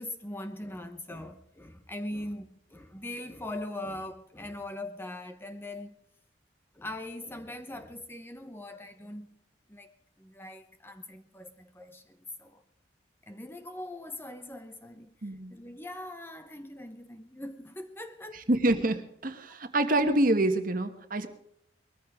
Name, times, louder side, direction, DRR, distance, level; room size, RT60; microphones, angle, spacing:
voice 1, 0.0-6.0 6.7-9.4 9.7-12.6 13.2-15.1 15.5-18.5 21.1-21.3, left 1 dB, 10° left, 0.9 m, -41 dB
voice 2, 15.2-15.6 18.5-21.3, right 1 dB, 45° right, 1.4 m, -26 dB
21.0 x 14.0 x 3.6 m
head